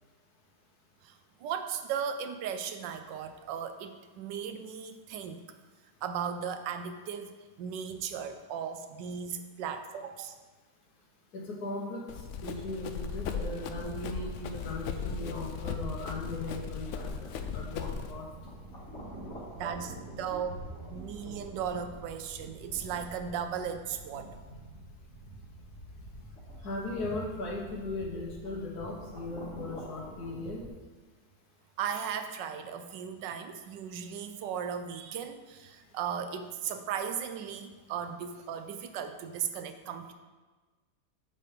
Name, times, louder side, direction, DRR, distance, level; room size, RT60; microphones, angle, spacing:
voice 1, 1.0-5.4 6.0-10.4 19.5-20.6 20.9-24.4 31.8-40.1, right 7 dB, 85° right, 9 dB, 1.3 m, -36 dB
voice 2, 11.3-12.0 12.4-18.3 26.6-30.6, left 2 dB, 65° left, -1 dB, 1.6 m, -38 dB
Run, 12.1-18.1, left 5 dB, 80° left, 0.6 m, -37 dB
sound 1, 13.7-30.7, right 1 dB, 40° left, 2.2 m, -46 dB
7.4 x 4.5 x 5.0 m, 1.3 s
omnidirectional pair, 1.9 m